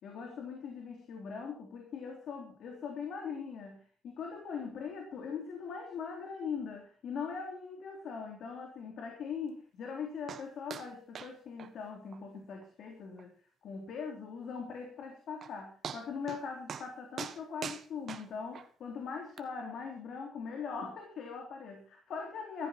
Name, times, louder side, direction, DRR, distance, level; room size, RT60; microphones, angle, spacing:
voice 1, 0.0-13.3 13.6-22.7, left 6 dB, 70° left, 2 dB, 3.6 m, -41 dB
sound 1, 10.3-10.4 10.7-10.9 11.1-11.3 11.6-11.7 12.1-12.2 12.6-12.7 13.2-13.3 15.0-15.1 15.4-15.5 15.8-16.4 16.7-16.9 17.2-18.7 19.4-19.5, right 7 dB, 55° right, 1.5 m, -42 dB
15.5 x 13.5 x 4.4 m, 0.42 s
cardioid pair, 90°, 0 cm